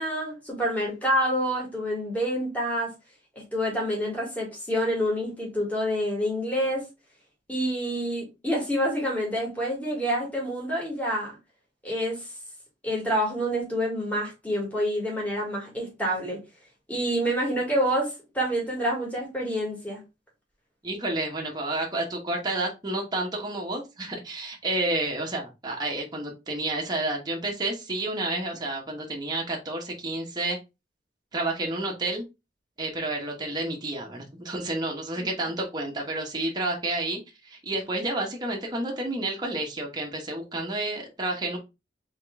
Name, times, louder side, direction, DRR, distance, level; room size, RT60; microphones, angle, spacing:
voice 1, 0.0-2.9 3.4-6.9 7.5-11.3 11.8-12.2 12.8-16.4 16.9-20.0 35.2-35.3, equal, 10° left, 2.1 m, -27 dB
voice 2, 20.8-30.6 31.3-32.2 32.8-41.6, right 2 dB, 25° right, 1.0 m, -30 dB
3.6 x 3.6 x 3.5 m
head